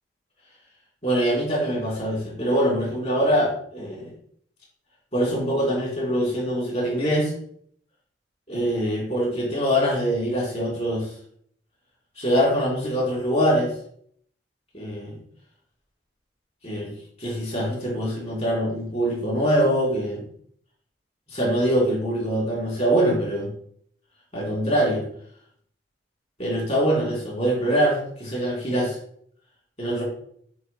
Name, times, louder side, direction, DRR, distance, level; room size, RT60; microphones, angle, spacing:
voice 1, 1.0-4.1 5.1-7.3 8.5-11.1 12.2-13.7 14.7-15.2 16.6-16.9 17.2-20.3 21.3-23.5 24.3-25.0 26.4-29.0 29.8-30.0, equal, 40° left, -4 dB, 3.2 m, -23 dB
7.3 x 3.3 x 5.4 m, 0.64 s
head